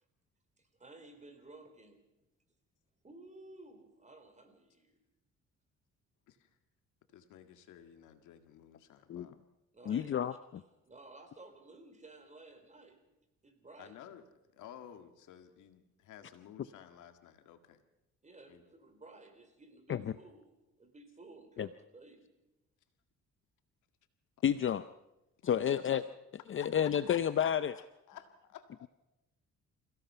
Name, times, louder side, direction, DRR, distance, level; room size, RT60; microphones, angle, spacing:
voice 1, 0.6-2.0 3.0-5.0 9.7-13.0 13.4-14.0 18.2-22.3 25.6-25.9, right 2 dB, 25° right, 7 dB, 4.0 m, -55 dB
voice 2, 7.1-9.5 13.8-14.2 14.5-17.8 18.5-18.6 25.5-26.0 26.6-28.9, left 10 dB, 85° left, 7 dB, 2.0 m, -53 dB
voice 3, 9.9-10.3 19.9-20.0 21.6-21.7 24.4-24.9 25.4-26.0 26.5-27.7, left 9 dB, 45° left, 13 dB, 0.6 m, -30 dB
28.5 x 16.5 x 5.7 m, 0.95 s
cardioid pair, 95°, 30 cm